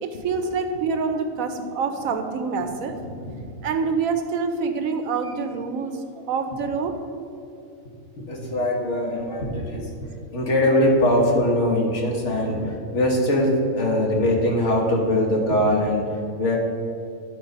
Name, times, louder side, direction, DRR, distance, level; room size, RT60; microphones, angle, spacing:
voice 1, 0.0-2.9 3.6-6.0 6.3-7.0, right 5 dB, 75° right, 7 dB, 1.1 m, -26 dB
voice 2, 3.2-3.7 7.8-9.9 10.3-16.6, left 1 dB, 55° left, 0 dB, 1.5 m, -22 dB
11.0 x 4.2 x 5.2 m, 2.6 s
omnidirectional pair, 1.5 m